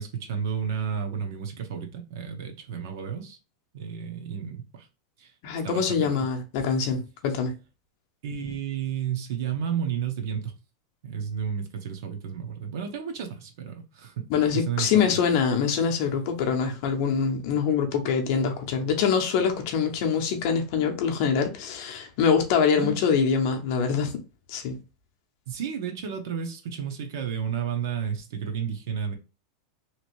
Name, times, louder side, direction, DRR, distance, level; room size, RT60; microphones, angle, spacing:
voice 1, 0.0-3.4 3.7-4.9 5.2-5.3 5.6-6.3 8.2-10.5 11.0-14.3 14.5-15.2 22.8-23.0 25.5-29.1, right 7 dB, 60° right, 0.7 m, -32 dB
voice 2, 5.4-7.5 14.3-24.1 24.5-24.8, left 6 dB, 45° left, 0.6 m, -24 dB
2.9 x 2.6 x 2.9 m
supercardioid pair, 175°, 2 cm